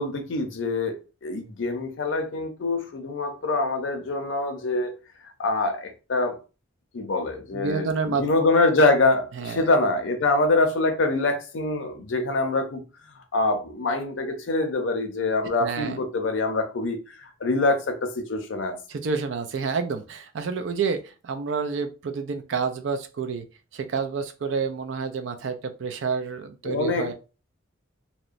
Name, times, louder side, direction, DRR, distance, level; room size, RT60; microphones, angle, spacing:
voice 1, 0.0-4.9 5.4-6.4 6.9-12.8 13.3-18.8 26.6-27.1, left 2 dB, 65° left, 0.5 m, -25 dB
voice 2, 7.5-8.3 9.3-9.7 15.6-16.0 18.9-23.5 23.7-27.1, right 5 dB, 65° right, 0.4 m, -29 dB
2.8 x 2.1 x 2.4 m
head